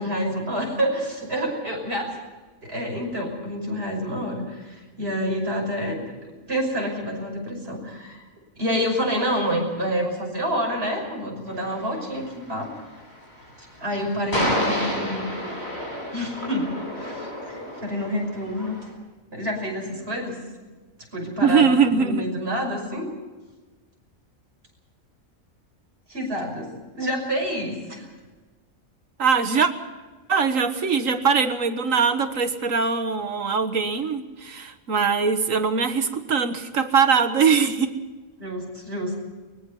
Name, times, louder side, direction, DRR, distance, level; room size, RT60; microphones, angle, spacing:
voice 1, 0.0-2.2 2.6-6.0 6.5-8.2 8.6-12.7 13.8-15.3 16.1-16.7 17.0-18.8 19.3-20.4 21.1-23.1 26.1-26.7 27.0-28.1 38.4-39.2, equal, 45° right, 1 dB, 6.3 m, -28 dB
sound 1, 11.5-18.9, equal, 50° left, 8.3 m, -31 dB
voice 2, 21.4-22.3 29.2-29.7 30.3-37.9, right 5 dB, 75° right, 9 dB, 1.8 m, -21 dB
23.5 x 21.0 x 5.6 m, 1.3 s
omnidirectional pair, 1.4 m